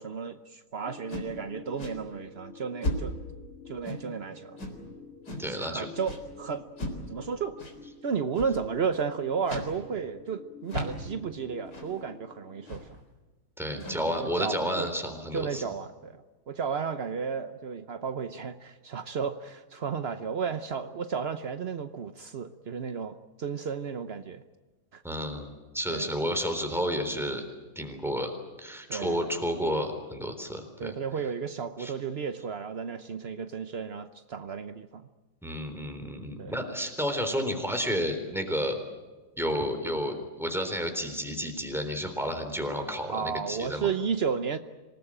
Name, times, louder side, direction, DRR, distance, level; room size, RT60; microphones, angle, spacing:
voice 1, 0.0-3.1 3.7-4.6 5.5-6.7 7.1-7.6 8.0-12.9 13.7-14.9 15.3-24.4 24.9-25.0 25.9-26.1 28.9-29.3 30.8-35.1 36.4-36.5 43.1-44.6, right 6 dB, 65° right, 9 dB, 0.6 m, -33 dB
sound 1, 0.8-12.7, left 3 dB, 85° left, 6.3 m, -49 dB
sound 2, 1.1-1.4 1.8-2.0 2.8-3.2 3.8-4.2 4.6-4.8 5.3-5.5 6.0-6.2 6.8-7.0 7.6-7.7 8.3-8.6 9.4-9.8 10.1-10.2 10.7-11.1 11.7-11.9 12.7-13.0 13.7-14.2, left 1 dB, 50° left, 4.7 m, -35 dB
voice 2, 5.4-5.9 13.6-15.6 25.0-27.4 27.8-28.3 28.6-30.9 31.8-31.9 35.4-38.8 39.4-43.9, equal, ahead, 5 dB, 3.7 m, -31 dB
26.5 x 19.0 x 8.8 m, 1.3 s
omnidirectional pair, 2.3 m